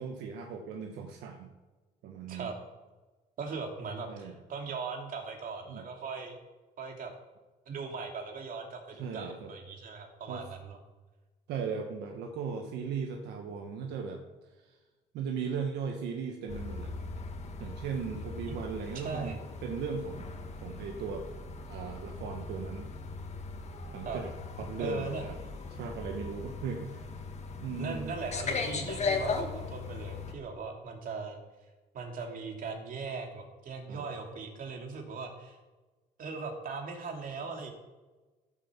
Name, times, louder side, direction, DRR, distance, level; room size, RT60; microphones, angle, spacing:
voice 1, 0.0-1.5 2.0-2.5 4.1-4.4 5.7-5.8 9.0-9.5 10.3-10.4 11.5-14.2 14.6-14.8 15.1-16.9 17.6-21.3 21.7-22.9 23.9-25.3 25.8-27.0 27.6-28.1 28.7-29.0 33.9-34.0, right 5 dB, 80° right, 3 dB, 1.4 m, -38 dB
voice 2, 3.4-6.4 6.8-7.1 7.7-10.8 18.4-18.5 18.9-19.4 24.0-24.2 24.8-25.2 27.8-31.4 31.9-35.6 36.2-37.7, right 4 dB, 55° right, 2 dB, 2.8 m, -39 dB
sound 1, 16.5-30.3, left 4 dB, 40° left, 2.0 m, -38 dB
14.5 x 7.3 x 7.4 m, 1.2 s
cardioid pair, 110°, 17 cm